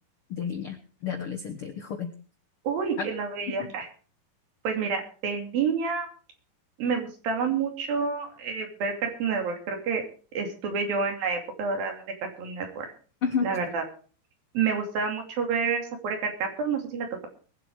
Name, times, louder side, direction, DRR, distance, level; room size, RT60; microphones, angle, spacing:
voice 1, 0.3-2.1 3.0-3.1 3.5-3.7 13.2-13.5, left 6 dB, 75° left, 7 dB, 1.2 m, -31 dB
voice 2, 2.6-3.9 4.6-6.1 6.8-10.0 10.3-12.9 13.4-13.8 14.5-17.3, right 5 dB, 75° right, 3 dB, 4.4 m, -29 dB
21.5 x 8.0 x 4.7 m, 0.40 s
omnidirectional pair, 4.2 m